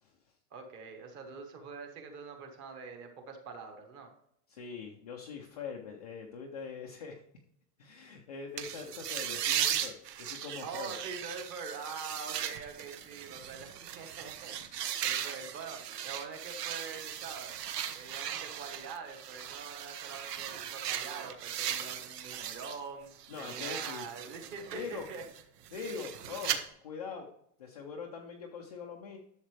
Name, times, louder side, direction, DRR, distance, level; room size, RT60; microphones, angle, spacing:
voice 1, 0.5-4.1 10.6-14.6 15.0-17.6 17.9-23.1 23.4-25.2, right 5 dB, 25° right, 4 dB, 1.2 m, -44 dB
voice 2, 4.5-7.2 7.8-10.9 23.3-24.1 24.7-25.1 25.7-27.3 27.6-29.2, left 5 dB, 25° left, 0 dB, 0.4 m, -43 dB
sound 1, 8.6-22.8 23.1-26.6, right 10 dB, 80° right, 1.3 m, -38 dB
11.5 x 7.2 x 3.2 m, 0.72 s
supercardioid pair, 175°, 47 cm